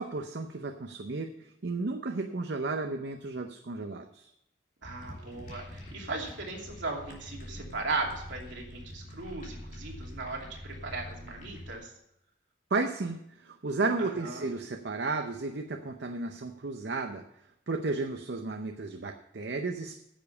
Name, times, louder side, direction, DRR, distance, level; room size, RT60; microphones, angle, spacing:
voice 1, 0.0-4.3 12.7-17.2 17.7-20.0, right 3 dB, 65° right, 5 dB, 0.7 m, -33 dB
sound 1, 4.8-11.8, equal, 45° left, 2.8 m, -45 dB
voice 2, 4.8-11.9 14.0-14.5, right 3 dB, 85° right, -1 dB, 2.8 m, -37 dB
10.5 x 7.1 x 6.8 m, 0.79 s
head